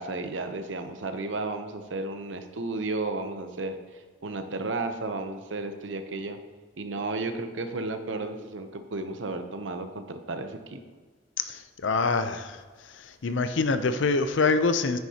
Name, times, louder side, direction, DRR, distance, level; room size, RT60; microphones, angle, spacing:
voice 1, 0.0-6.4 6.8-10.8, right 3 dB, 70° right, 7 dB, 0.8 m, -33 dB
voice 2, 11.4-12.6 12.9-15.0, left 4 dB, 70° left, 10 dB, 0.6 m, -25 dB
9.2 x 9.1 x 2.9 m, 1.5 s
head